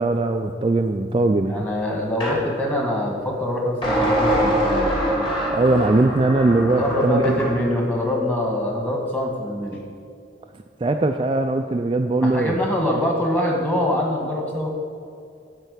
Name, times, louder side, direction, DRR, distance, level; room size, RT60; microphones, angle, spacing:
voice 1, 0.0-1.6 5.5-7.2 10.8-12.6, right 2 dB, 30° right, 5 dB, 0.4 m, -20 dB
voice 2, 1.5-4.9 6.8-9.8 12.2-14.7, left 1 dB, 10° left, -1 dB, 1.7 m, -24 dB
sound 1, 2.2-2.4 3.8-7.6, equal, 30° left, 2.6 m, -23 dB
12.5 x 4.5 x 8.2 m, 2.4 s
head